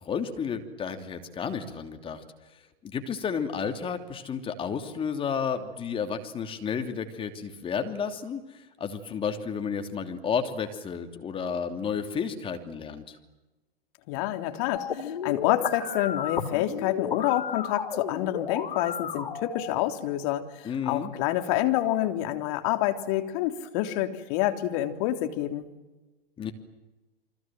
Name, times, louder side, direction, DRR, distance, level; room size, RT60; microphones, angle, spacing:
voice 1, 0.0-2.2 2.8-8.4 8.8-13.2 20.6-21.1 26.4-26.5, left 6 dB, 20° left, 6 dB, 3.0 m, -32 dB
voice 2, 14.1-25.7, left 13 dB, 40° left, 6 dB, 3.4 m, -28 dB
sound 1, 14.7-19.7, left 7 dB, 65° left, 2.9 m, -33 dB
29.5 x 25.5 x 7.8 m, 1.1 s
figure-of-eight pair, 100°, 29 cm